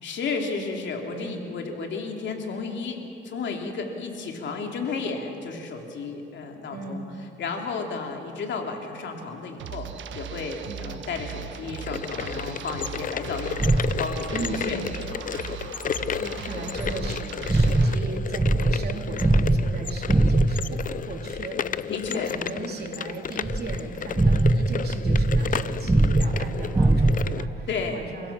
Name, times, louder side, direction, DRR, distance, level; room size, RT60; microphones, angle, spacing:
voice 1, 0.0-7.0 7.4-15.1 21.9-22.3 27.7-28.0, left 4 dB, 65° left, 3 dB, 3.0 m, -33 dB
voice 2, 1.1-1.5 6.7-7.0 10.7-10.8 14.3-14.9 16.0-28.3, right 3 dB, 55° right, 1 dB, 3.6 m, -37 dB
sound 1, 9.6-17.9, right 9 dB, 70° right, 1.3 m, -38 dB
sound 2, 11.6-27.5, left 8 dB, 45° left, 0.6 m, -33 dB
sound 3, 13.6-14.2 16.8-20.9 23.4-27.4, right 2 dB, 15° right, 0.9 m, -22 dB
29.0 x 16.0 x 7.3 m, 2.8 s
cardioid pair, 90°, 20 cm